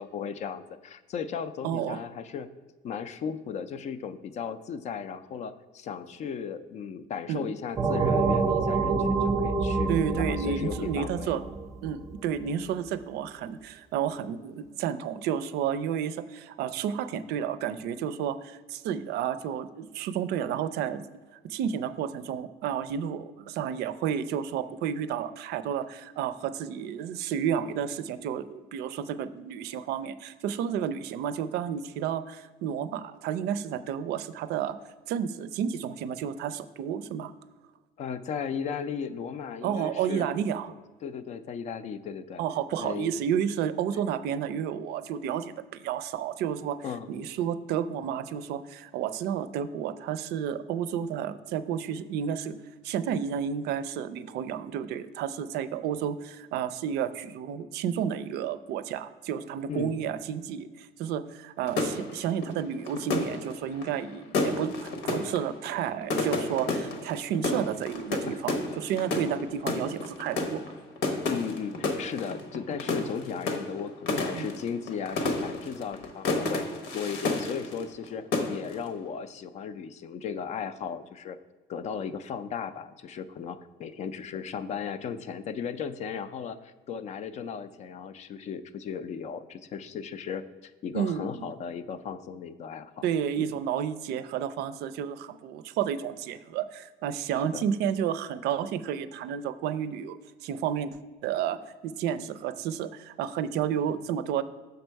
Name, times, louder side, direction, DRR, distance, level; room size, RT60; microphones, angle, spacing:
voice 1, 0.0-2.5 2.8-9.9 10.2-11.4 38.0-40.3 40.7-40.8 41.0-42.4 42.8-43.1 46.8-47.1 59.7-60.0 68.3-68.4 71.2-76.6 76.9-81.4 81.7-93.1 93.4-93.5 97.5-97.6, left 7 dB, 40° left, 13 dB, 0.4 m, -36 dB
voice 2, 1.6-2.0 7.3-7.5 9.9-11.4 11.8-21.0 21.4-34.8 35.1-37.3 39.6-40.7 42.4-46.8 47.1-52.6 52.8-70.6 74.4-74.5 90.9-91.5 93.0-104.4, right 8 dB, 70° right, 14 dB, 0.4 m, -31 dB
sound 1, 7.8-12.2, right 4 dB, 20° right, 0.5 m, -27 dB
sound 2, 61.7-78.1 78.3-78.9, left 3 dB, 85° left, 1.1 m, -31 dB
6.8 x 5.3 x 4.5 m, 1.3 s
cardioid pair, 150°, 17 cm